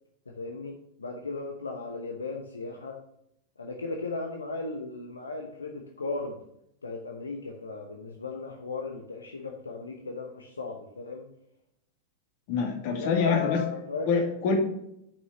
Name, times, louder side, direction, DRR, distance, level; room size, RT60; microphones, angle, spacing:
voice 1, 0.3-0.7 1.0-3.0 3.6-6.4 6.8-11.3 12.8-14.1, left 3 dB, 75° left, 2 dB, 1.0 m, -36 dB
voice 2, 12.5-13.6 14.1-14.5, left 5 dB, 50° left, 2 dB, 2.3 m, -25 dB
6.8 x 6.1 x 6.0 m, 0.78 s
figure-of-eight pair, 90°, 0 cm